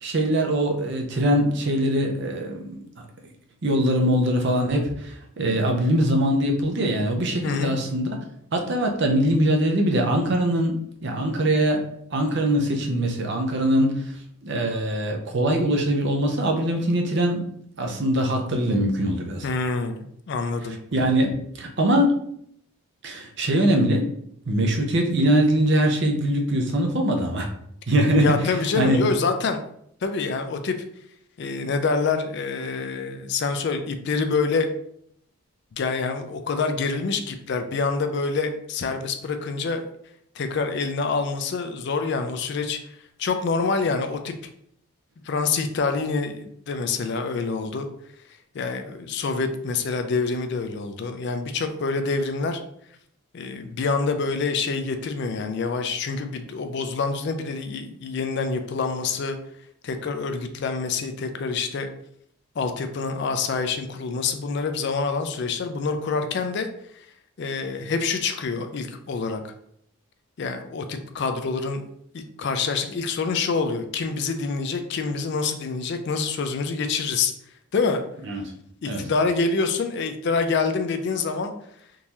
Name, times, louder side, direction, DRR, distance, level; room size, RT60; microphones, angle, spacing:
voice 1, 0.0-2.8 3.6-8.2 8.5-11.8 12.1-14.2 14.4-17.5 17.8-19.5 20.9-22.2 23.0-24.1 24.5-27.5 27.9-29.0 78.3-78.4 78.9-79.0, right 1 dB, 50° right, 2 dB, 0.6 m, -22 dB
voice 2, 7.4-7.8 19.4-20.8 28.2-29.6 30.0-30.8 31.4-34.7 35.7-39.9 40.4-42.8 43.2-44.3 45.3-47.9 48.5-52.6 53.3-59.4 59.8-61.9 62.6-66.7 67.4-69.5 70.4-71.8 72.1-77.3 77.7-78.0 78.8-81.5, left 4 dB, 50° left, 7 dB, 0.3 m, -26 dB
3.7 x 2.6 x 2.9 m, 0.70 s
head